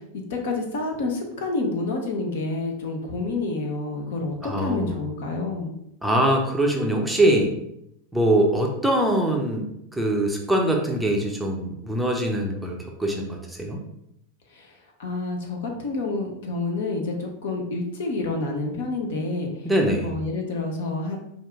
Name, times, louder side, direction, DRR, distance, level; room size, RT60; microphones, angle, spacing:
voice 1, 0.3-5.7 14.6-14.7 15.0-19.5 20.0-21.2, left 3 dB, 55° left, 2 dB, 0.8 m, -28 dB
voice 2, 4.4-5.0 6.0-7.5 8.1-9.7 9.9-13.8 19.6-20.1, right 1 dB, ahead, 0 dB, 0.6 m, -23 dB
4.4 x 2.5 x 3.5 m, 0.79 s
figure-of-eight pair, 90°, 0 cm